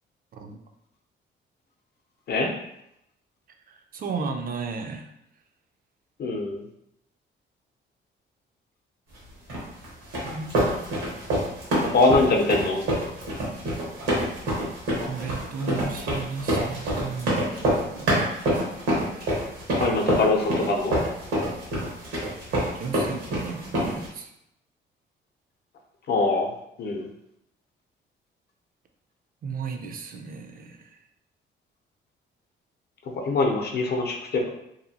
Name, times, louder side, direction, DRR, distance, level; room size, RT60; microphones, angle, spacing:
voice 1, 3.7-5.1 10.2-10.6 14.7-18.4 22.8-24.3 29.4-31.0, right 5 dB, 45° right, 5 dB, 0.4 m, -35 dB
voice 2, 6.2-6.6 11.8-12.8 19.7-21.0 26.1-26.5 26.8-27.1 33.2-34.5, left 3 dB, 55° left, 1 dB, 0.6 m, -23 dB
sound 1, 9.5-24.1, right 1 dB, 90° right, 1.2 m, -26 dB
2.7 x 2.4 x 2.6 m, 0.80 s
cardioid pair, 90°, 20 cm